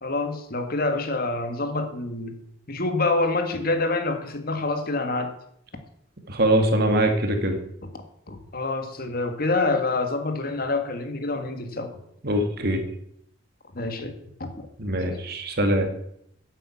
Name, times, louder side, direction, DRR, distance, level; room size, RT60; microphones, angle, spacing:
voice 1, 0.0-2.4 2.7-5.3 8.3-12.0 13.7-14.2 14.4-14.7 15.1-15.2, left 3 dB, 50° left, 7 dB, 1.8 m, -27 dB
voice 2, 6.3-7.6 12.2-12.8 14.8-15.9, right 1 dB, 55° right, 5 dB, 2.2 m, -22 dB
10.5 x 8.3 x 8.6 m, 0.74 s
head